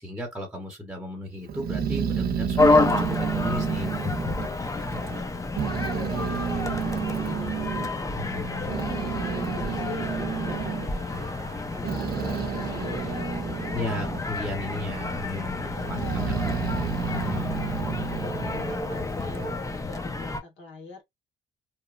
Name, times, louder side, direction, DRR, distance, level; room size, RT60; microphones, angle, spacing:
voice 1, 0.0-3.9 8.2-8.7 13.7-17.6, left 2 dB, 5° right, 0.9 m, -35 dB
Growling, 1.5-5.3 5.6-7.9 8.4-14.3 14.6-15.3 15.8-19.5, right 7 dB, 50° right, 0.5 m, -31 dB
sound 1, 2.6-20.4, left 3 dB, 15° left, 0.4 m, -29 dB
voice 2, 5.9-11.3 11.7-14.1 15.7-16.6 17.8-21.0, left 4 dB, 70° left, 1.2 m, -43 dB
3.0 x 2.1 x 2.4 m
cardioid pair, 90°, 20 cm